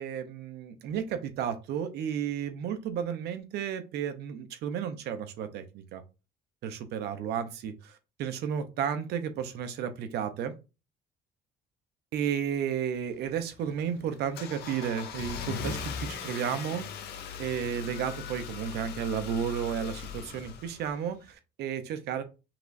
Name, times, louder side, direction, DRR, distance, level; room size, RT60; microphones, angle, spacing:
voice 1, 0.0-6.0 6.6-7.9 8.2-10.5 12.1-16.9 17.4-22.2, right 8 dB, 75° right, 0.8 m, -33 dB
Car / Engine starting, 13.1-21.3, left 7 dB, 75° left, 1.0 m, -40 dB
6.0 x 3.0 x 2.6 m
cardioid pair, 110°, 17 cm